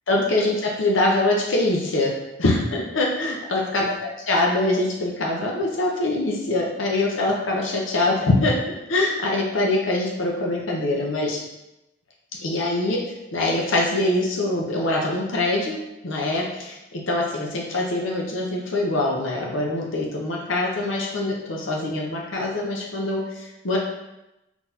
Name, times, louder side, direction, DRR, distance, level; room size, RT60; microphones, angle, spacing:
voice 1, 0.1-8.6 8.9-11.4 12.4-15.8 16.0-23.8, left 2 dB, 85° left, -1 dB, 0.7 m, -24 dB
4.4 x 3.9 x 2.7 m, 0.93 s
head